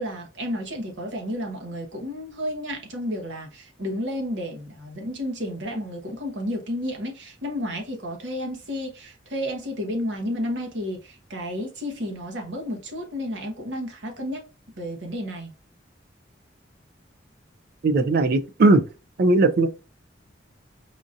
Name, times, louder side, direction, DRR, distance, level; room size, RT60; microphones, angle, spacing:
voice 1, 0.0-14.4 14.8-15.5, equal, 75° right, 1.1 m, -31 dB
voice 2, 17.8-18.8 19.2-19.7, right 2 dB, 55° right, 0.4 m, -18 dB
4.8 x 2.6 x 2.5 m
head